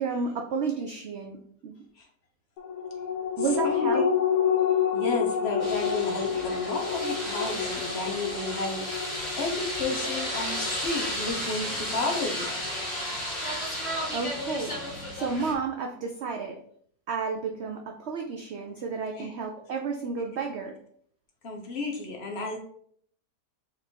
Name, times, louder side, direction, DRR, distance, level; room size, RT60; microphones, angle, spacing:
voice 1, 0.0-1.4 1.6-1.8 3.4-4.1 14.1-14.8 15.1-16.6 17.1-20.8, right 5 dB, 80° right, 3 dB, 0.6 m, -31 dB
sound 1, 2.6-13.4 13.8-13.9, left 8 dB, 80° left, 1.1 m, -30 dB
voice 2, 3.6-4.0 4.9-12.5 19.2-19.3 21.4-22.6, left 3 dB, 50° left, 1 dB, 0.9 m, -32 dB
sound 2, 5.6-15.5, equal, 35° left, 2.0 m, -33 dB
4.2 x 2.6 x 4.3 m, 0.63 s
omnidirectional pair, 1.7 m